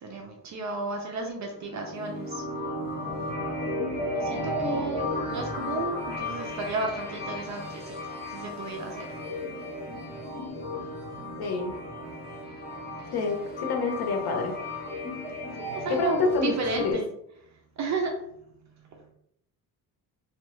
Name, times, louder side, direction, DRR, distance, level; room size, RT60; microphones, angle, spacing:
voice 1, 0.0-2.4 4.1-8.0 8.3-9.1 11.2-11.3 12.0-12.1 15.6-17.0 17.8-18.2, right 3 dB, 50° right, 2 dB, 0.5 m, -33 dB
sound 1, 1.5-16.9, left 1 dB, 25° left, 0.9 m, -34 dB
voice 2, 11.4-11.7 13.1-14.5 15.9-17.0, left 4 dB, 70° left, 3 dB, 0.8 m, -27 dB
3.1 x 2.3 x 3.0 m, 0.74 s
cardioid pair, 145°, 38 cm